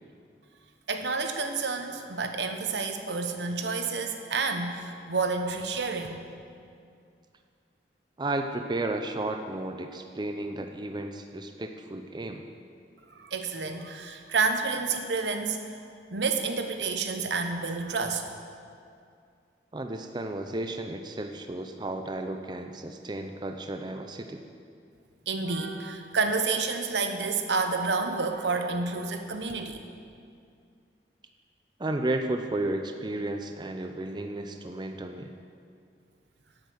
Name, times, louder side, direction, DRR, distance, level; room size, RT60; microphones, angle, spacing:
voice 1, 0.9-6.2 13.1-15.6 16.1-18.3 25.3-29.8, right 4 dB, 80° right, 6 dB, 1.0 m, -29 dB
voice 2, 8.2-12.4 19.7-24.4 31.8-35.3, right 2 dB, 25° right, 6 dB, 0.5 m, -33 dB
11.0 x 8.1 x 7.9 m, 2.3 s
head